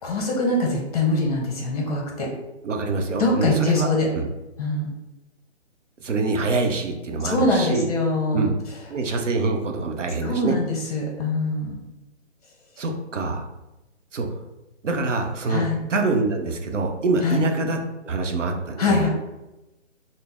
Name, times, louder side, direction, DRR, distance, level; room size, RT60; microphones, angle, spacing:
voice 1, 0.0-2.3 3.2-4.1 4.6-4.9 7.2-8.4 10.2-11.8 15.5-15.8 17.2-17.4 18.8-19.1, left 2 dB, 35° left, -1 dB, 0.8 m, -23 dB
voice 2, 2.6-3.9 4.2-4.3 6.0-7.9 8.3-8.5 8.9-10.5 12.8-13.5 14.1-14.3 14.8-15.6 15.9-17.8 18.0-19.1, right 3 dB, 90° right, 3 dB, 0.7 m, -25 dB
4.0 x 2.0 x 3.5 m, 1.0 s
hypercardioid pair, 150°, 36 cm